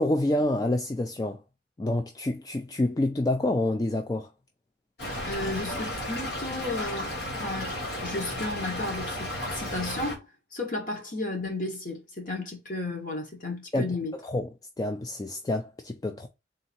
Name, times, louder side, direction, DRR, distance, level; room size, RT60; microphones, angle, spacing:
voice 1, 0.0-1.4 1.8-4.3 13.7-14.5 14.8-16.3, left 1 dB, 20° left, 0.3 m, -28 dB
Stream / Trickle dribble, 5.0-10.2, left 1 dB, 65° left, 1.2 m, -34 dB
voice 2, 5.2-7.1 7.4-10.3 10.5-14.1, left 2 dB, 45° left, 1.4 m, -33 dB
3.8 x 2.7 x 4.3 m
head